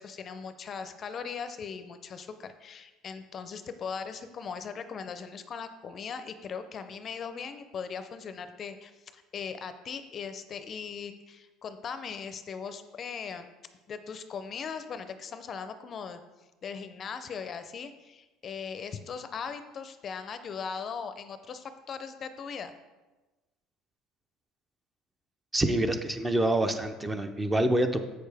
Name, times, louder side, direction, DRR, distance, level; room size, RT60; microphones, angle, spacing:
voice 1, 0.0-13.5 13.9-16.2 16.6-22.7, left 6 dB, 35° left, 10 dB, 0.5 m, -39 dB
voice 2, 25.5-28.0, right 1 dB, 10° right, 8 dB, 0.6 m, -26 dB
7.7 x 6.5 x 3.4 m, 1.2 s
cardioid pair, 125°, 0 cm